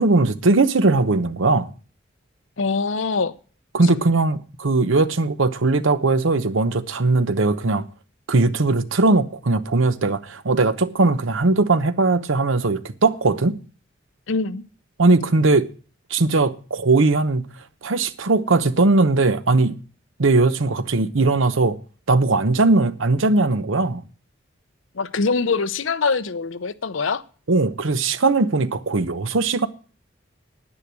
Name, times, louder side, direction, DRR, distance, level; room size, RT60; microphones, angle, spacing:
voice 1, 0.0-1.7 3.7-7.8 8.3-13.6 15.0-15.7 16.1-17.5 17.8-19.8 20.2-21.8 22.1-24.0 27.5-29.7, right 3 dB, 85° right, 0.9 m, -19 dB
voice 2, 2.6-3.3 14.3-14.6 24.9-27.2, left 4 dB, 80° left, 0.8 m, -23 dB
10.0 x 9.9 x 6.1 m
head